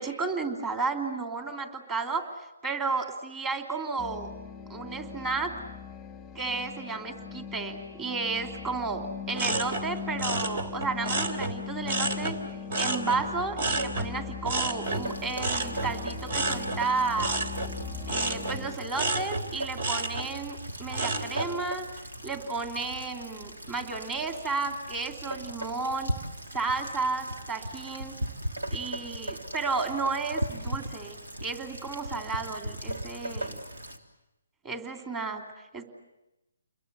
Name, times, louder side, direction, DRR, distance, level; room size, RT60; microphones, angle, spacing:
voice 1, 0.0-2.3 2.6-4.3 4.7-5.5 6.3-12.3 12.8-17.3 18.1-21.9 22.2-26.1 26.5-28.2 28.7-33.6 34.6-35.4 35.7-35.8, right 4 dB, 15° right, 4 dB, 2.9 m, -32 dB
sound 1, 4.0-18.8, left 7 dB, 5° left, 1.1 m, -40 dB
sound 2, 9.3-12.4 12.7-21.5 22.0-22.4, right 2 dB, 55° right, 3.3 m, -31 dB
Rain, 14.8-34.0, right 1 dB, 85° right, 3.3 m, -38 dB
29.5 x 22.0 x 8.1 m, 0.95 s
hypercardioid pair, 155°, 0 cm